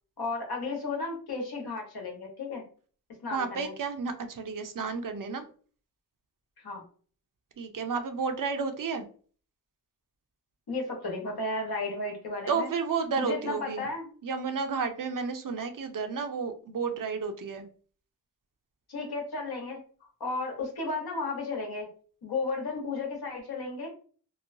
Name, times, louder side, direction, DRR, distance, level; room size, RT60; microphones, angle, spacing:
voice 1, 0.2-2.6 3.2-3.7 6.6-6.8 10.7-12.7 13.2-14.1 18.9-19.8 20.2-21.9 22.2-23.9, left 3 dB, 70° left, 1 dB, 1.1 m, -33 dB
voice 2, 3.3-5.4 7.6-9.0 12.5-13.9 14.2-17.6, right 5 dB, 55° right, 7 dB, 0.6 m, -31 dB
3.0 x 2.1 x 2.6 m, 0.42 s
cardioid pair, 60°, 40 cm